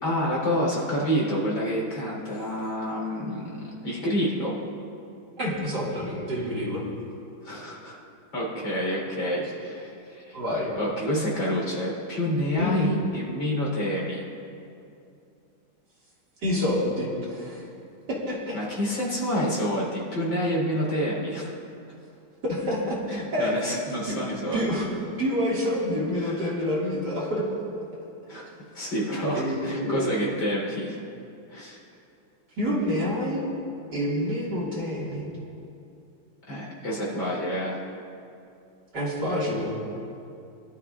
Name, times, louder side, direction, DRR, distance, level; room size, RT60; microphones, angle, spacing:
voice 1, 0.0-4.5 7.4-8.0 8.3-10.4 10.8-14.2 18.5-21.5 23.1-24.7 26.2-26.4 28.3-28.4 28.7-31.0 31.5-31.8 36.5-37.8, equal, 60° left, -4 dB, 4.4 m, -28 dB
voice 2, 5.4-6.8 10.3-10.7 12.6-12.9 16.4-17.6 18.1-18.6 22.4-23.5 24.0-24.2 24.5-27.4 29.3-30.1 32.6-33.5 33.9-35.3 38.9-39.8, equal, 50° right, -6 dB, 2.6 m, -27 dB
22.0 x 12.0 x 2.4 m, 2.6 s
omnidirectional pair, 2.4 m